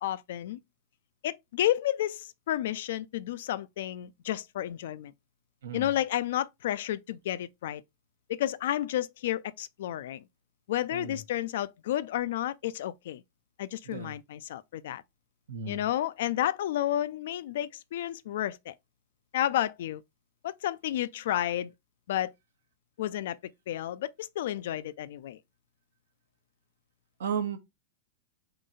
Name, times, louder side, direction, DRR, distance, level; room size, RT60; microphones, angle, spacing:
voice 1, 0.0-0.6 1.2-5.1 5.7-7.8 8.3-10.2 10.7-13.2 13.6-15.0 15.7-18.7 19.3-20.0 20.4-21.7 22.1-22.3 23.0-23.4 23.7-25.4, left 12 dB, 65° left, 0.3 m, -31 dB
voice 2, 15.5-15.8 27.2-27.6, right 6 dB, 70° right, 0.9 m, -34 dB
3.9 x 3.1 x 3.7 m
figure-of-eight pair, 95°, 0 cm